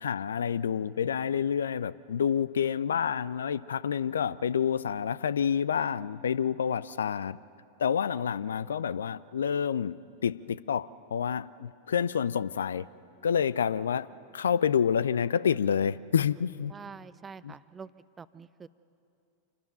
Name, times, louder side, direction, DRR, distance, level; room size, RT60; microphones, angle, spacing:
voice 1, 0.0-7.4 7.8-12.9 13.2-14.1 14.3-16.7 17.4-17.5, left 7 dB, 65° left, 19 dB, 0.4 m, -28 dB
voice 2, 16.7-17.9 18.2-18.7, right 5 dB, 15° right, 17 dB, 0.5 m, -45 dB
26.5 x 12.5 x 9.2 m, 2.6 s
figure-of-eight pair, 90°, 0 cm